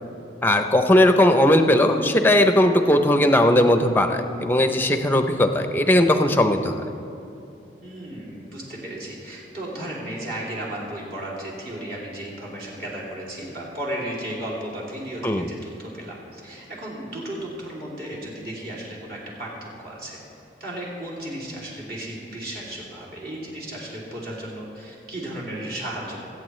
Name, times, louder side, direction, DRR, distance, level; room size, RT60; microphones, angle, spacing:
voice 1, 0.4-6.8 15.2-15.5, left 1 dB, 10° left, 7 dB, 0.5 m, -18 dB
voice 2, 7.8-20.2 20.6-26.2, right 1 dB, 55° right, -5 dB, 2.8 m, -34 dB
23.0 x 8.4 x 3.2 m, 2.8 s
head